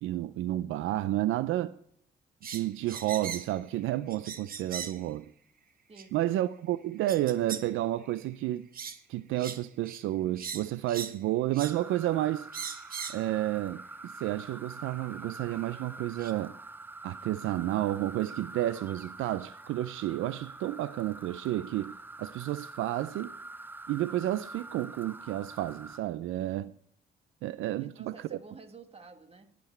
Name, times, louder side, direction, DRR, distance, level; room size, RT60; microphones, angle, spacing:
voice 1, 0.0-1.7 2.4-5.3 6.1-8.7 9.1-12.5 13.1-16.6 17.0-23.3 23.9-26.7 27.4-28.1, right 14 dB, 85° right, 0.4 m, -31 dB
sound 1, 2.4-3.6 4.1-5.0 6.0-6.1 7.1-7.7 8.0-8.2 8.7-9.0 9.4-9.6 9.9-10.0 10.4-11.2 11.5-11.8 12.5-13.3 14.3-14.4 15.5-15.6 16.2-16.3, right 6 dB, 45° right, 1.1 m, -40 dB
voice 2, 5.9-6.3 27.8-29.6, right 4 dB, 30° right, 1.8 m, -51 dB
sound 2, 11.6-26.0, right 2 dB, 10° right, 0.5 m, -45 dB
18.0 x 6.1 x 4.3 m
cardioid pair, 90°, 20 cm